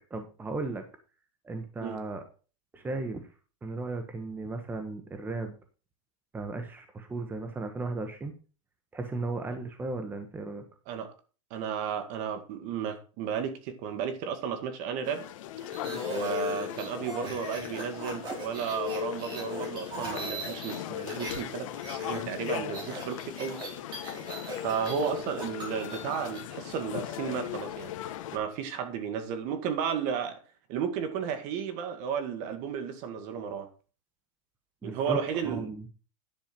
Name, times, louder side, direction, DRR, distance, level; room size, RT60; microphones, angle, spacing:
voice 1, 0.1-0.8 1.4-2.2 2.7-3.3 3.6-5.5 6.3-8.3 8.9-10.6 34.8-35.2 35.4-35.9, right 3 dB, 10° right, 1.2 m, -35 dB
voice 2, 11.5-15.2 16.1-23.6 24.6-27.9 28.3-30.4 30.7-33.7 34.8-35.7, right 7 dB, 50° right, 1.9 m, -33 dB
sound 1, 15.0-28.4, left 12 dB, 70° left, 1.3 m, -38 dB
sound 2, 15.6-21.4 21.7-26.4, right 1 dB, 25° right, 4.6 m, -40 dB
10.5 x 7.0 x 4.4 m
supercardioid pair, 145°, 17 cm